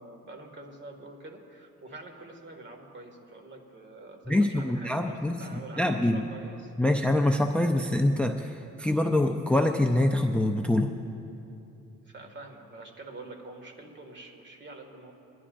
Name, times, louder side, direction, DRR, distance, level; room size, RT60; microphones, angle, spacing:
voice 1, 0.0-6.7 12.1-15.1, right 2 dB, 40° right, 3 dB, 2.0 m, -46 dB
voice 2, 4.3-6.2 6.8-10.9, left 1 dB, 5° left, 4 dB, 0.5 m, -25 dB
24.5 x 11.0 x 2.6 m, 2.7 s
cardioid pair, 90°, 30 cm